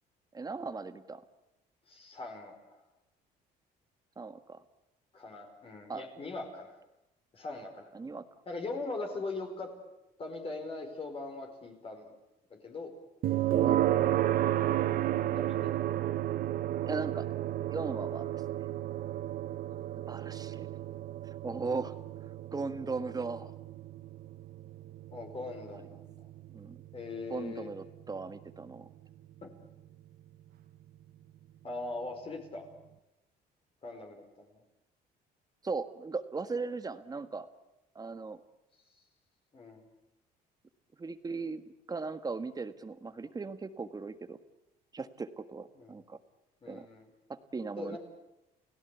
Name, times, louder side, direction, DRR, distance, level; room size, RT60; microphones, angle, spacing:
voice 1, 0.3-1.2 4.2-4.6 5.9-6.0 7.9-8.2 13.6-13.9 16.8-17.3 17.7-18.2 20.1-20.7 21.4-21.9 22.5-23.5 26.5-26.8 27.3-28.9 35.6-37.5 37.9-38.4 41.0-41.6 41.9-44.4 44.9-46.2 46.7-46.9 47.3-48.0, right 4 dB, 20° right, 10 dB, 1.6 m, -37 dB
voice 2, 1.9-2.8 5.1-6.8 7.3-7.9 8.5-9.7 10.2-12.1 12.6-12.9 15.3-16.0 19.7-19.8 25.1-26.2 26.9-27.7 31.6-32.7 33.8-34.6 39.5-39.8 45.8-46.0 46.6-47.1 47.8-48.0, left 3 dB, 35° left, 3 dB, 4.9 m, -41 dB
sound 1, 13.2-28.2, right 13 dB, 60° right, 1.1 m, -32 dB
30.0 x 17.0 x 8.4 m, 0.92 s
cardioid pair, 110°, 17 cm